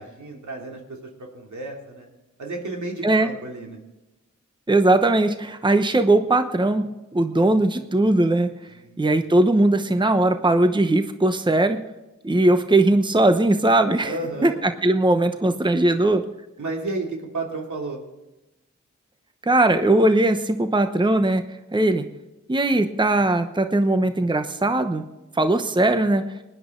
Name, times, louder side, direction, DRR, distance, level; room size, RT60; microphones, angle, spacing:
voice 1, 0.0-2.1 2.4-3.8 8.7-9.1 14.0-14.6 16.6-18.0, right 2 dB, 70° right, 0 dB, 2.9 m, -32 dB
voice 2, 4.7-6.9 7.1-8.5 9.0-11.8 12.2-14.1 14.4-16.2 19.4-21.4 21.7-22.0 22.5-25.0 25.3-26.3, right 2 dB, 15° right, 8 dB, 0.9 m, -19 dB
19.0 x 10.5 x 3.8 m, 1.0 s
cardioid pair, 40°, 30 cm